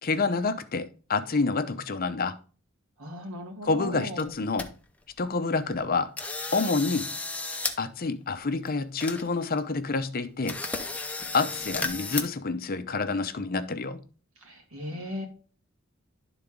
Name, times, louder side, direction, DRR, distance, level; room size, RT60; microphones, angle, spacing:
voice 1, 0.0-2.4 3.6-4.7 5.2-6.1 6.5-7.1 7.8-10.6 11.3-14.0, left 4 dB, 45° left, 0.7 m, -28 dB
voice 2, 3.0-4.3 14.4-15.3, equal, 80° right, 2.1 m, -37 dB
sound 1, 3.9-4.0 4.2-4.7 5.1-5.2 5.7-5.9 6.2-7.8 8.1-8.2 8.7-8.8 9.0-9.6 10.0-10.1 10.5-12.2, left 3 dB, 5° left, 0.7 m, -33 dB
11.5 x 4.0 x 3.7 m
head